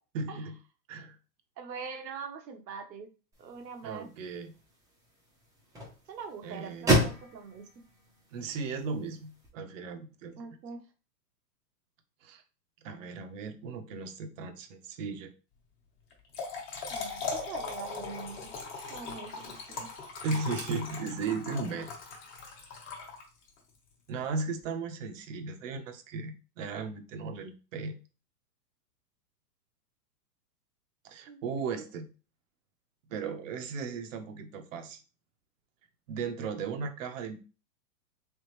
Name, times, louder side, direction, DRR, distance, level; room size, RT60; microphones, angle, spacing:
voice 1, 0.1-0.5 0.9-1.2 3.8-4.5 6.4-7.0 8.3-10.5 12.2-12.4 12.8-15.3 20.2-21.9 24.1-27.9 31.0-32.1 33.1-35.0 36.1-37.4, right 4 dB, 50° right, 8 dB, 0.8 m, -36 dB
voice 2, 1.6-3.1 3.4-4.1 6.1-7.6 10.4-10.8 16.9-18.5 18.9-19.9 31.3-31.9, right 5 dB, 80° right, 4 dB, 1.1 m, -43 dB
sound 1, 3.3-9.5, equal, 5° right, 0.7 m, -33 dB
Trickle dribble / Fill (with liquid), 16.1-23.6, left 4 dB, 25° left, 1.2 m, -39 dB
3.6 x 3.4 x 3.1 m, 0.34 s
hypercardioid pair, 140°, 50 cm